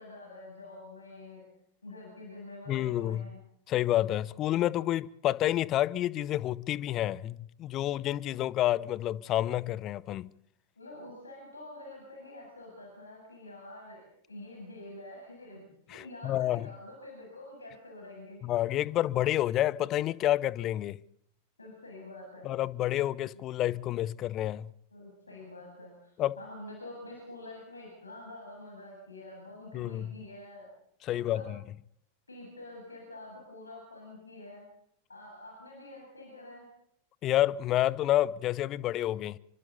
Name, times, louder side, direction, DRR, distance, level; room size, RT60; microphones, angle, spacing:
voice 1, 0.0-1.4 1.8-3.4 10.8-18.4 21.6-22.5 23.3-23.4 24.9-30.7 31.1-31.5 32.3-34.7 35.1-36.7, left 2 dB, 80° left, 7.6 m, -47 dB
voice 2, 2.7-3.3 3.7-10.3 15.9-16.7 18.4-21.0 22.4-24.7 26.2-26.4 29.7-30.1 31.0-31.6 37.2-39.4, left 13 dB, 35° left, 0.8 m, -29 dB
29.0 x 25.0 x 4.2 m
figure-of-eight pair, 90°, 0 cm